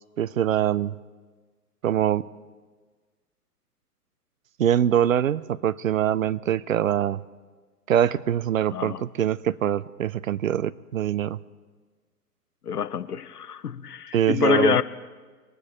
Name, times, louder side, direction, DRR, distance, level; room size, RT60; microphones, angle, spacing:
voice 1, 0.2-0.9 1.8-2.2 4.6-7.2 7.9-11.4 14.1-14.8, right 10 dB, 60° right, 0.5 m, -23 dB
voice 2, 8.7-9.0 12.7-14.8, left 7 dB, 75° left, 0.7 m, -25 dB
23.0 x 9.6 x 4.2 m
figure-of-eight pair, 120°, 47 cm